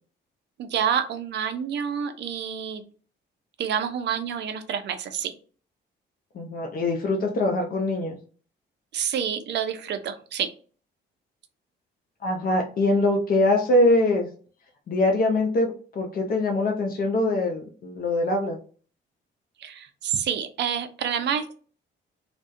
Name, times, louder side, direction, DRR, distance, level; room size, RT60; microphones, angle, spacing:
voice 1, 0.6-2.8 3.6-5.3 8.9-10.5 19.6-21.5, right 8 dB, 60° right, 9 dB, 0.5 m, -28 dB
voice 2, 6.3-8.1 12.2-14.3 14.9-18.6, left 2 dB, 50° left, 2 dB, 0.5 m, -23 dB
2.2 x 2.1 x 2.6 m, 0.40 s
cardioid pair, 90°, 20 cm